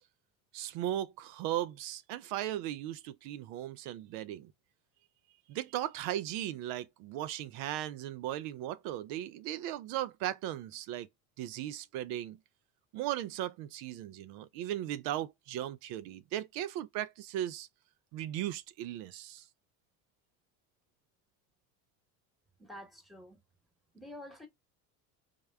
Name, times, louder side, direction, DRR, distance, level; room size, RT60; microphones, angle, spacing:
voice 1, 0.5-4.5 5.5-11.1 11.4-12.4 12.9-17.7 18.1-19.4, right 12 dB, 60° right, 0.5 m, -37 dB
voice 2, 22.6-23.4 23.9-24.5, left 1 dB, ahead, 1.1 m, -48 dB
3.5 x 2.1 x 3.4 m
hypercardioid pair, 75°, 44 cm